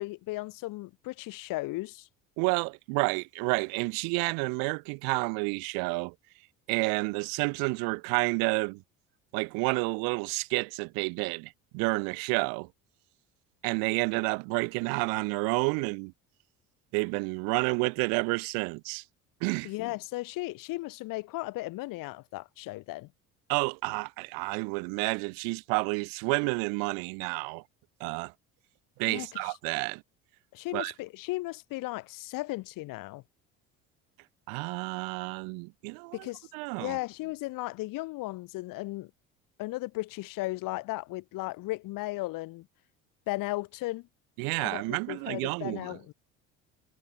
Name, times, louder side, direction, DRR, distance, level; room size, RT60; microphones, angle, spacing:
voice 1, 0.0-2.1 19.6-23.1 29.1-29.5 30.5-33.2 36.1-36.5 36.8-39.1 39.6-42.6 43.3-44.0 44.6-46.1, left 20 dB, 70° left, 1.7 m, -36 dB
voice 2, 2.4-6.1 6.7-8.8 9.3-12.7 13.6-16.1 16.9-19.0 19.4-19.7 23.5-27.6 28.0-28.3 29.0-30.0 30.7-30.9 34.5-36.3 36.5-37.0 44.4-46.1, right 37 dB, 80° right, 0.9 m, -30 dB
supercardioid pair, 85°, 35 cm